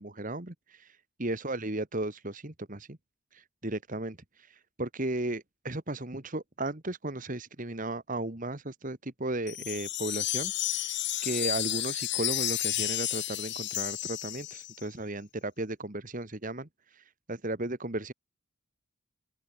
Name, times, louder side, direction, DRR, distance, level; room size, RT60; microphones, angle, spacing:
voice 1, 0.0-3.0 3.3-18.1, right 2 dB, 35° right, 1.8 m, -35 dB
Wind chime, 9.5-14.8, left 14 dB, 50° left, 1.9 m, -32 dB
open air
head